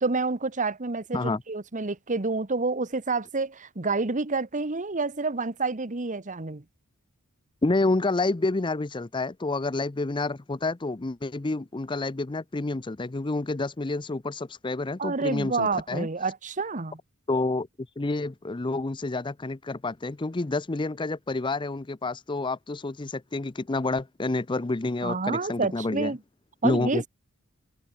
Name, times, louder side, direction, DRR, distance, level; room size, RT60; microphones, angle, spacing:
voice 1, 0.0-6.6 15.0-17.0 25.0-26.2 26.6-27.1, right 3 dB, 35° right, 1.2 m, -28 dB
voice 2, 7.6-16.1 17.3-17.7 18.0-26.1 26.6-27.1, left 2 dB, 20° left, 0.6 m, -28 dB
head